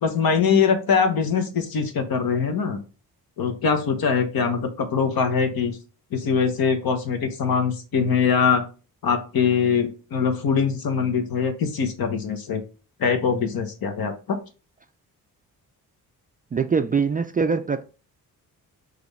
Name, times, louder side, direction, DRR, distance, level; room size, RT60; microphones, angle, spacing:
voice 1, 0.0-2.8 3.4-5.8 6.1-8.7 9.0-12.6 13.0-14.4, left 6 dB, 60° left, 1.0 m, -22 dB
voice 2, 16.5-17.8, right 5 dB, 20° right, 0.3 m, -23 dB
4.8 x 2.6 x 3.2 m
supercardioid pair, 55°, 40 cm